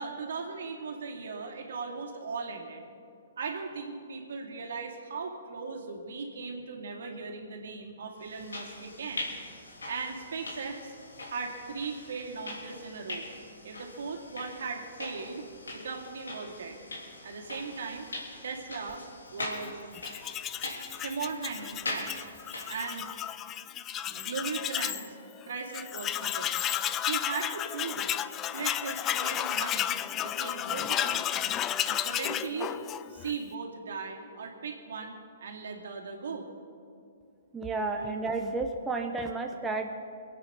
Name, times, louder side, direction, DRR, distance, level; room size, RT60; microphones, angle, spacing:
voice 1, 0.0-2.8 3.4-9.3 9.9-10.9 11.3-13.3 13.6-15.4 15.7-18.1 18.4-19.0 19.3-19.8 21.0-22.3 22.7-23.1 24.1-25.2 25.4-26.6 27.1-28.2 28.5-31.5 31.8-32.7 33.1-36.5 37.7-38.2, right 4 dB, 70° right, 1 dB, 2.4 m, -38 dB
sound 1, 8.2-23.2, left 2 dB, 85° left, 3.1 m, -42 dB
Tools, 19.9-25.1 25.4-25.5 25.7-33.3, left 11 dB, 25° left, 0.4 m, -32 dB
voice 2, 37.5-40.0, right 3 dB, 10° right, 3 dB, 0.9 m, -32 dB
22.5 x 9.1 x 5.5 m, 2.5 s
hypercardioid pair, 130°, 0 cm